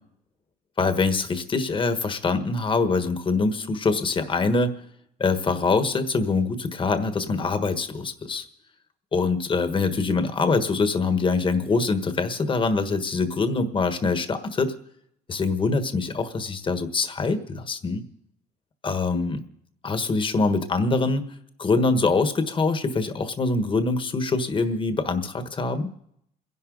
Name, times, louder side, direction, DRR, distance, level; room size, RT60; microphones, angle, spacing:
voice 1, 0.8-4.7 5.2-8.5 9.1-14.7 15.3-18.0 18.8-19.4 19.8-21.3 21.6-25.9, left 3 dB, 30° left, 9 dB, 1.4 m, -24 dB
28.0 x 11.0 x 3.9 m, 0.75 s
cardioid pair, 110°, 17 cm